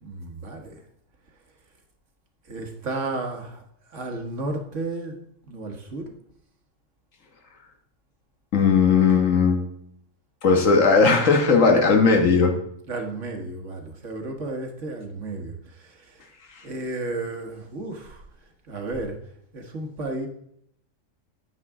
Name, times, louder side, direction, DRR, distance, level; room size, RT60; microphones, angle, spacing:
voice 1, 0.0-0.8 2.5-3.6 3.9-5.2 5.5-6.2 12.9-16.2 16.6-18.2 18.7-19.2 19.5-20.3, right 2 dB, 65° right, 3 dB, 1.7 m, -33 dB
voice 2, 8.5-9.6 10.4-12.5, left 5 dB, 75° left, 4 dB, 1.7 m, -17 dB
9.2 x 8.2 x 3.6 m, 0.70 s
omnidirectional pair, 1.4 m